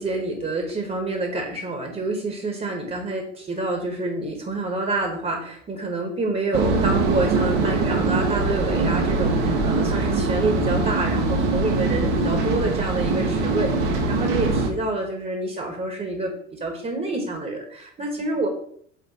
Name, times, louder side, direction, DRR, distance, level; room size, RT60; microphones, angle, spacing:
voice 1, 0.0-18.5, right 2 dB, 20° right, 3 dB, 1.5 m, -27 dB
sound 1, 6.5-14.7, right 3 dB, 55° right, 1.4 m, -22 dB
8.6 x 3.2 x 4.4 m, 0.65 s
figure-of-eight pair, 75°, 39 cm